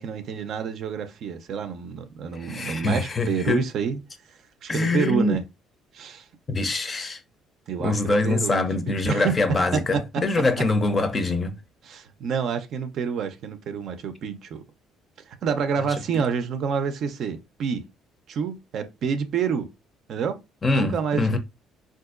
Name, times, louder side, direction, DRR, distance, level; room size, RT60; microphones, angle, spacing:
voice 1, 0.0-4.0 4.6-5.4 5.9-6.3 7.7-9.4 9.7-10.2 11.8-14.6 15.3-17.9 18.3-19.7 20.1-20.4 20.7-21.4, right 6 dB, 60° right, 0.5 m, -28 dB
voice 2, 2.4-3.6 4.7-5.4 6.5-7.2 7.8-11.6 20.6-21.4, left 2 dB, 25° left, 0.5 m, -24 dB
3.7 x 2.5 x 2.4 m
cardioid pair, 115°, 0 cm